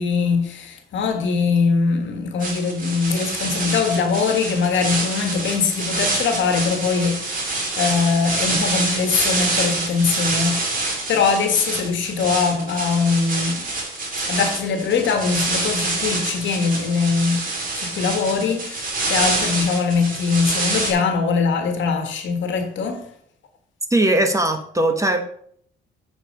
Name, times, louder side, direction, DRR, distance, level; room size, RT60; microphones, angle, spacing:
voice 1, 0.0-10.6 11.1-13.6 14.3-17.4 17.8-23.0, left 5 dB, 70° left, 1.5 m, -22 dB
sound 1, 2.4-20.9, right 2 dB, 45° right, 2.6 m, -26 dB
voice 2, 23.9-25.2, right 1 dB, 15° right, 1.1 m, -19 dB
8.7 x 4.7 x 5.2 m
cardioid pair, 90°, 20 cm